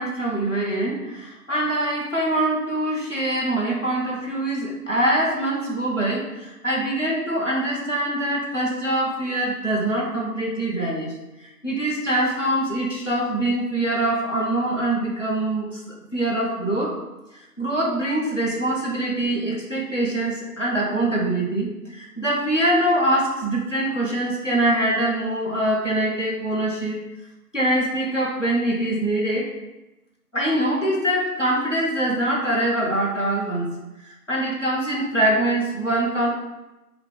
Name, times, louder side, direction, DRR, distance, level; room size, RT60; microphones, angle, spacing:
voice 1, 0.0-16.9 17.6-27.0 27.5-29.5 30.3-33.7 34.1-36.3, right 1 dB, 50° left, -5 dB, 1.0 m, -24 dB
5.3 x 2.4 x 3.9 m, 1.0 s
figure-of-eight pair, 180°, 47 cm